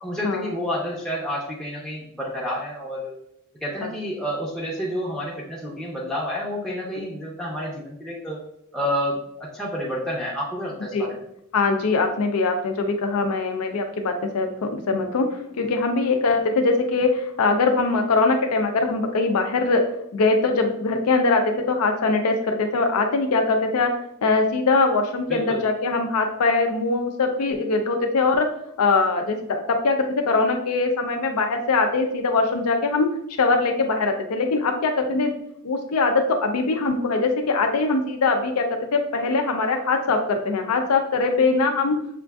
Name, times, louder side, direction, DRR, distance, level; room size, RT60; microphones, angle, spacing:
voice 1, 0.0-3.2 3.6-8.4 8.7-11.2 25.3-25.6, equal, 5° left, -4 dB, 0.5 m, -29 dB
voice 2, 11.5-19.8 20.1-21.4 21.7-23.9 24.2-28.5 28.8-33.1 33.4-35.3 35.6-38.7 38.9-42.0, left 3 dB, 85° left, 4 dB, 0.5 m, -22 dB
6.4 x 2.5 x 2.3 m, 0.76 s
head